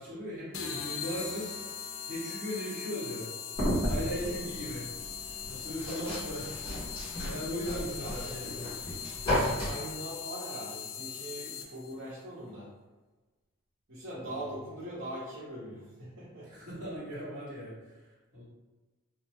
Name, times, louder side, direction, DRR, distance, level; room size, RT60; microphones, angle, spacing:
voice 1, 0.0-1.5 2.1-3.3 3.8-4.8 5.5-6.5 7.2-8.6 14.2-14.4 16.4-18.4, equal, 35° right, -10 dB, 1.0 m, -38 dB
sound 1, 0.5-11.9, left 8 dB, 60° left, 0.3 m, -40 dB
sound 2, 3.5-9.7, equal, 20° left, 1.3 m, -34 dB
voice 2, 8.0-8.5 9.5-12.7 13.9-16.5, right 1 dB, 60° right, -9 dB, 0.8 m, -41 dB
2.9 x 2.2 x 3.4 m, 1.2 s
head